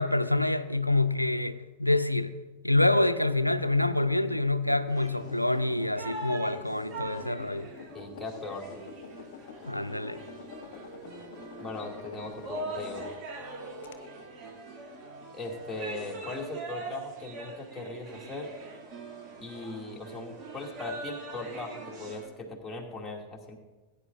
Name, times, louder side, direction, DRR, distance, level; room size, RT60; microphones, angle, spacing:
voice 1, 0.0-2.3 2.6-7.7 9.6-10.2, left 2 dB, 90° left, 12 dB, 0.5 m, -26 dB
sound 1, 2.9-13.4 13.8-13.9, left 6 dB, 55° left, 1.0 m, -47 dB
sound 2, 4.9-22.3, right 2 dB, 35° right, 2.3 m, -43 dB
voice 2, 7.9-8.9 11.6-13.1 15.3-18.5 19.4-23.6, left 2 dB, 5° left, -3 dB, 2.4 m, -39 dB
18.5 x 9.9 x 2.6 m, 1.2 s
figure-of-eight pair, 90°, 0 cm